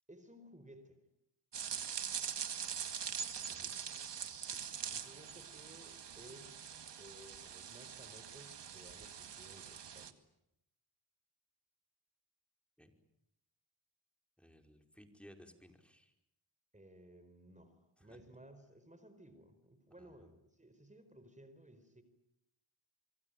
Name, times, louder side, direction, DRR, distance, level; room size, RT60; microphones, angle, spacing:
voice 1, 0.1-1.0 3.7-3.8 4.8-6.7 7.0-10.2 16.7-22.0, right 1 dB, 15° right, 10 dB, 4.6 m, -58 dB
sound 1, 1.5-10.1, right 8 dB, 60° right, 2.0 m, -43 dB
voice 2, 14.4-16.1 18.0-18.2 20.0-20.3, equal, ahead, 5 dB, 5.2 m, -59 dB
26.0 x 23.5 x 9.3 m, 0.82 s
cardioid pair, 60°, 46 cm